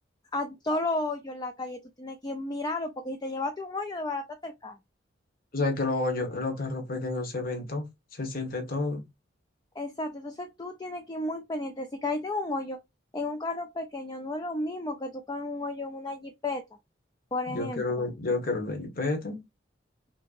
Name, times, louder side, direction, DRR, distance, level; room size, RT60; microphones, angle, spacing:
voice 1, 0.3-4.8 9.8-12.8 13.1-16.6 17.3-18.1, left 2 dB, 20° left, 0.5 m, -33 dB
voice 2, 5.5-7.9 8.1-9.0 17.5-19.4, left 3 dB, 50° left, 1.4 m, -30 dB
5.5 x 2.9 x 2.5 m
head